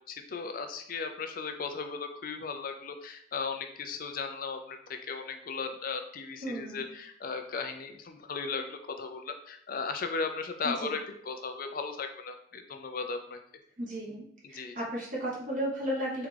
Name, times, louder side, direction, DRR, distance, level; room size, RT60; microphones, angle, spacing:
voice 1, 0.1-4.8 5.1-13.4 14.4-14.8, left 4 dB, 50° left, 6 dB, 0.5 m, -36 dB
voice 2, 6.4-6.9 10.6-10.9 13.8-14.2 14.5-16.3, equal, 45° right, -4 dB, 0.9 m, -34 dB
3.6 x 3.2 x 3.3 m, 0.66 s
head